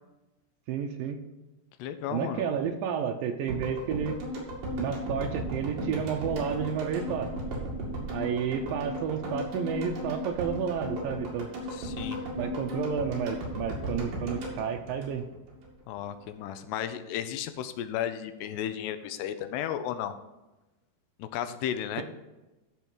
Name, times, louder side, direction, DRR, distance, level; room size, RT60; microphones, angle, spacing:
voice 1, 0.7-1.2 2.1-4.2 4.8-7.3 8.1-11.5 12.4-15.3, right 7 dB, 85° right, 5 dB, 2.0 m, -31 dB
voice 2, 1.8-2.4 11.7-12.3 15.9-20.1 21.2-22.0, left 10 dB, 85° left, 10 dB, 2.8 m, -34 dB
sound 1, 3.5-15.7 15.9-16.0, equal, 55° right, 3.5 m, -36 dB
14.0 x 5.0 x 4.5 m, 1.0 s
omnidirectional pair, 4.8 m